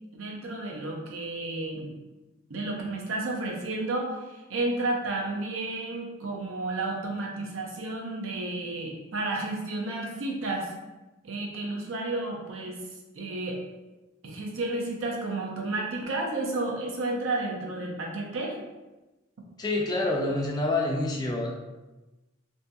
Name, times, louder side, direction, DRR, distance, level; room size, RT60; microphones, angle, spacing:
voice 1, 0.1-1.9 2.5-10.7 11.2-12.8 13.1-13.6 14.2-18.6, right 2 dB, 75° right, -1 dB, 0.6 m, -32 dB
voice 2, 19.6-21.5, left 2 dB, 20° left, -1 dB, 0.3 m, -27 dB
2.7 x 2.6 x 2.3 m, 1.1 s
head